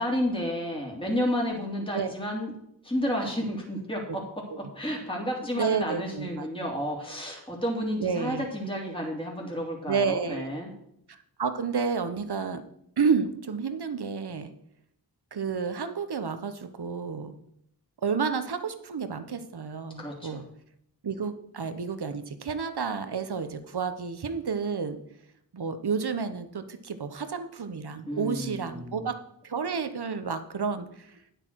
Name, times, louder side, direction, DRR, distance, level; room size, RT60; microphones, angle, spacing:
voice 1, 0.0-2.5 2.8-4.2 4.7-10.7 20.0-20.4 28.1-29.0, equal, 10° left, -2 dB, 3.0 m, -31 dB
voice 2, 5.6-6.5 8.0-8.4 9.9-10.5 11.1-12.6 13.0-14.5 15.3-17.3 18.0-20.4 21.0-25.0 25.5-29.2 29.4-31.1, right 5 dB, 65° right, 10 dB, 1.1 m, -30 dB
9.8 x 8.0 x 4.7 m, 0.73 s
cardioid pair, 50°, 42 cm